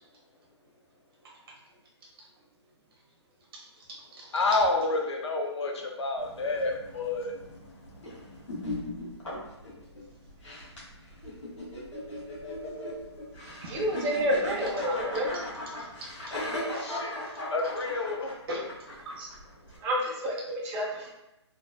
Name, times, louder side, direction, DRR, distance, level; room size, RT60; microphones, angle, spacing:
voice 1, 3.8-4.3 13.6-13.8 15.8-17.4 18.5-18.7 19.2-19.3 20.8-21.1, equal, 55° right, -1 dB, 0.8 m, -42 dB
voice 2, 4.3-7.4 16.8-17.2 17.5-18.4, left 3 dB, 70° left, 2 dB, 0.5 m, -29 dB
sound 1, 6.2-19.8, left 1 dB, 90° left, 1.0 m, -38 dB
voice 3, 13.7-15.4 19.8-21.1, equal, 15° right, -3 dB, 0.4 m, -29 dB
2.6 x 2.1 x 2.3 m, 0.89 s
hypercardioid pair, 145°, 15 cm